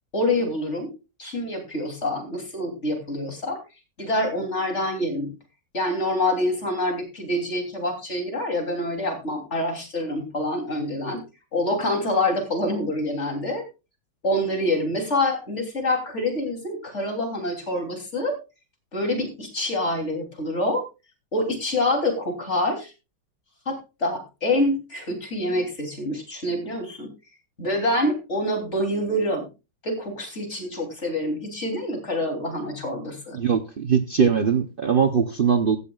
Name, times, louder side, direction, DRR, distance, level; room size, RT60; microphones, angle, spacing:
voice 1, 0.1-0.9 1.2-3.6 4.0-5.3 5.7-11.2 11.5-13.6 14.2-18.3 18.9-20.8 21.3-22.9 23.7-27.1 27.6-29.5 29.8-33.4, left 1 dB, 35° left, 3 dB, 3.4 m, -26 dB
voice 2, 33.3-35.8, right 7 dB, 85° right, 8 dB, 0.4 m, -21 dB
16.5 x 12.5 x 2.4 m, 0.30 s
omnidirectional pair, 2.1 m